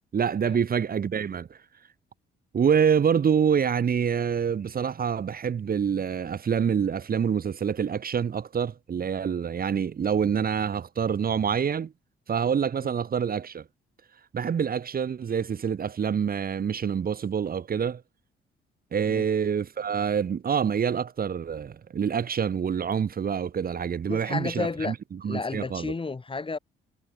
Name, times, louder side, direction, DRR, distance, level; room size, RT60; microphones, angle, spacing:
voice 1, 0.1-1.6 2.5-11.9 12.3-13.6 14.3-18.0 18.9-25.9, right 7 dB, 50° right, 2.8 m, -26 dB
voice 2, 24.1-24.9 25.3-26.6, left 3 dB, 25° left, 6.9 m, -32 dB
cardioid pair, 90°, 20 cm